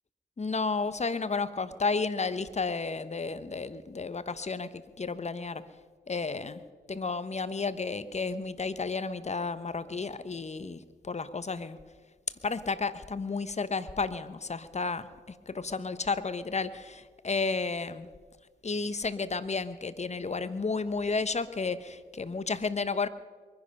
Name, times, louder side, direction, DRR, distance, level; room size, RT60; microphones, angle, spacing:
voice 1, 0.4-5.6 6.1-6.6 6.9-11.8 12.4-18.1 18.6-23.1, left 4 dB, 35° left, 14 dB, 1.1 m, -32 dB
23.0 x 10.5 x 5.5 m, 1.5 s
supercardioid pair, 45°, 20 cm